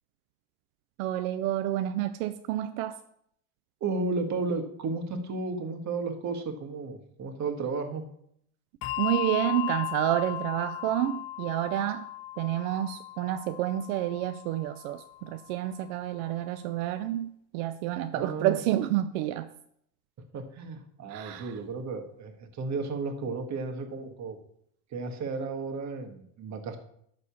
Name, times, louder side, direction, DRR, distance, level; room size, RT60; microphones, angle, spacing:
voice 1, 1.0-3.0 9.0-12.1 12.4-19.5 21.1-21.5, right 13 dB, 85° right, 10 dB, 0.7 m, -29 dB
voice 2, 3.8-8.0 18.1-18.6 20.3-24.4 24.9-26.8, right 3 dB, 40° right, 5 dB, 1.8 m, -33 dB
Bell, 8.8-15.7, left 15 dB, 60° left, 0.9 m, -37 dB
11.5 x 4.2 x 7.0 m, 0.70 s
supercardioid pair, 115°, 41 cm